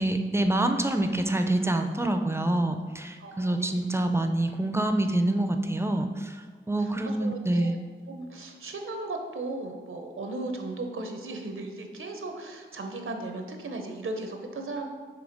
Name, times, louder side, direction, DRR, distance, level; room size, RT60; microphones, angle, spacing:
voice 1, 0.0-7.8, right 1 dB, 10° right, 6 dB, 0.5 m, -26 dB
voice 2, 3.2-3.8 6.8-7.8 8.1-14.9, right 2 dB, 80° right, 4 dB, 0.7 m, -36 dB
6.1 x 3.3 x 5.0 m, 1.5 s
wide cardioid pair, 75°, 21 cm